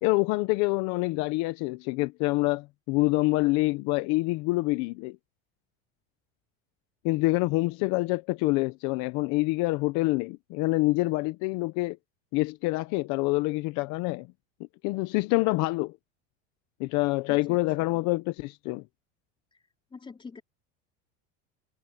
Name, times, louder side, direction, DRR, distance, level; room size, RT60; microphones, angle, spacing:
voice 1, 0.0-5.2 7.0-12.0 12.3-14.3 14.8-16.0 16.8-18.8, left 22 dB, 60° left, 0.9 m, -26 dB
voice 2, 17.3-18.0 19.5-19.6 19.9-20.4, left 5 dB, 15° left, 3.8 m, -46 dB
cardioid pair, 145°, 31 cm